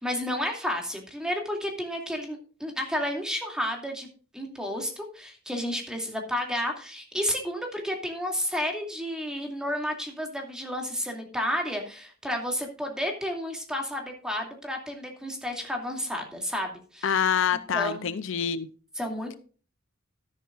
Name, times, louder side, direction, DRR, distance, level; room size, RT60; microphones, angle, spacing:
voice 1, 0.0-4.1 4.3-17.2 17.7-18.1 19.0-19.4, equal, 5° right, 2 dB, 2.6 m, -31 dB
voice 2, 17.0-18.7, left 7 dB, 65° left, 14 dB, 0.6 m, -26 dB
13.0 x 11.0 x 2.5 m, 0.38 s
head